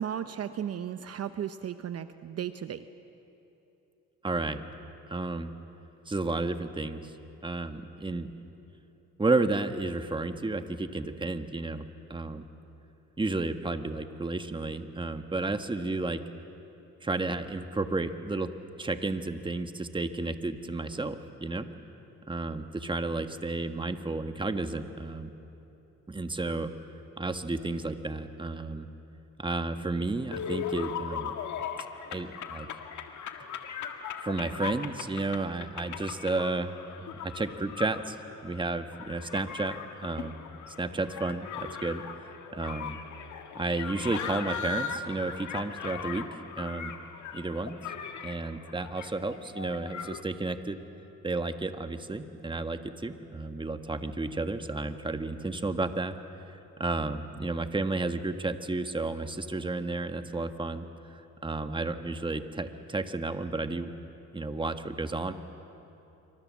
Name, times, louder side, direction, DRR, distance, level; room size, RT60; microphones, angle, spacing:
voice 1, 0.0-2.8, right 9 dB, 55° right, 11 dB, 0.8 m, -35 dB
voice 2, 4.2-4.6 5.1-5.5 6.1-7.1 7.4-8.3 9.2-12.4 13.2-16.2 17.0-18.5 18.8-21.7 22.3-25.3 26.1-26.7 27.2-28.9 29.4-31.3 32.1-32.7 34.2-36.7 37.0-38.2 38.4-40.4 40.7-43.0 43.5-46.3 46.6-46.9 47.3-47.8 48.2-50.8 51.2-56.2 56.5-60.8 61.1-63.9 64.3-65.3, right 3 dB, 15° right, 8 dB, 1.4 m, -32 dB
sound 1, 30.3-50.2, left 7 dB, 70° left, 1.8 m, -39 dB
26.5 x 24.5 x 7.5 m, 3.0 s
cardioid pair, 90°, 30 cm